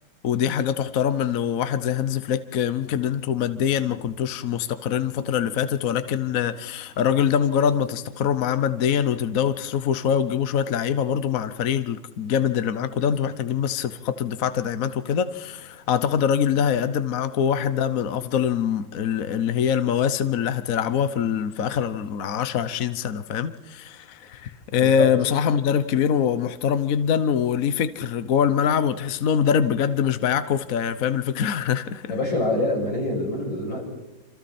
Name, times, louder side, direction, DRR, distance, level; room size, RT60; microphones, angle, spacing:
voice 1, 0.2-32.2, left 8 dB, 55° left, 11 dB, 1.2 m, -24 dB
voice 2, 24.8-25.1 32.1-33.8, left 2 dB, 80° left, -3 dB, 8.8 m, -25 dB
27.5 x 27.0 x 4.3 m, 1.1 s
omnidirectional pair, 2.1 m